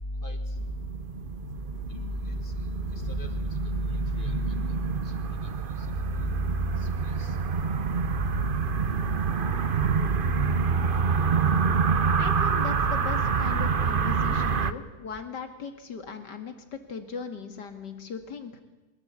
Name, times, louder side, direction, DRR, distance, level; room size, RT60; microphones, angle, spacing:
voice 1, 0.0-0.7 1.9-2.7 3.0-3.3 3.6-4.8 6.1-6.9 7.2-7.3 8.1-9.5 10.2-11.5, equal, 30° left, 6 dB, 2.2 m, -33 dB
sound 1, 0.6-14.7, right 5 dB, 40° right, 0.8 m, -27 dB
voice 2, 12.2-18.6, left 5 dB, 90° left, 6 dB, 2.8 m, -39 dB
23.5 x 20.0 x 8.4 m, 1.2 s
omnidirectional pair, 1.8 m